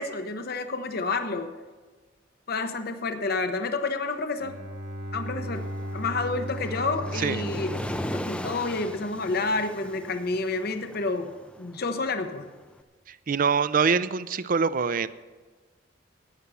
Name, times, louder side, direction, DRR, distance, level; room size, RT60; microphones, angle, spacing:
voice 1, 0.0-1.5 2.5-4.5 5.1-5.7 5.9-7.8 8.1-11.3 11.6-12.5, left 3 dB, 55° left, 7 dB, 0.8 m, -29 dB
Bowed string instrument, 4.3-9.6, equal, 65° right, 1.5 m, -36 dB
Waves surf, 5.5-12.7, left 1 dB, 5° left, 0.5 m, -39 dB
voice 2, 13.1-15.1, right 5 dB, 45° right, 15 dB, 0.5 m, -24 dB
14.0 x 9.6 x 5.6 m, 1.4 s
head